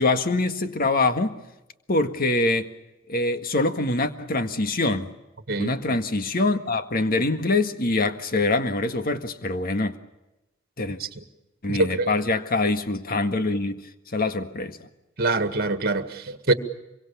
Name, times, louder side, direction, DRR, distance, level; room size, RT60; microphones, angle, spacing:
voice 1, 0.0-1.3 1.9-2.7 3.1-5.1 5.6-10.0 10.8-11.0 11.6-13.8 14.1-14.8, left 2 dB, 45° left, 1.8 m, -24 dB
voice 2, 11.7-12.1 15.2-16.5, right 2 dB, 50° right, 2.0 m, -24 dB
25.5 x 23.5 x 7.0 m
head